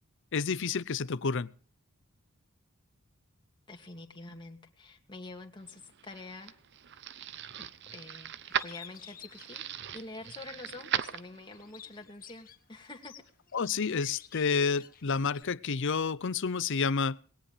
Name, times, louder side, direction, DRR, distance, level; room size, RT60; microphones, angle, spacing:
voice 1, 0.3-1.5 13.5-17.2, left 5 dB, 60° left, 0.6 m, -29 dB
voice 2, 3.7-6.6 7.6-9.6 9.9-13.1, left 2 dB, 20° left, 2.3 m, -47 dB
sound 1, 5.7-11.7, right 9 dB, 55° right, 0.7 m, -38 dB
Bird, 8.5-10.5 10.9-15.4, left 9 dB, 40° left, 1.7 m, -52 dB
20.0 x 18.0 x 3.3 m
head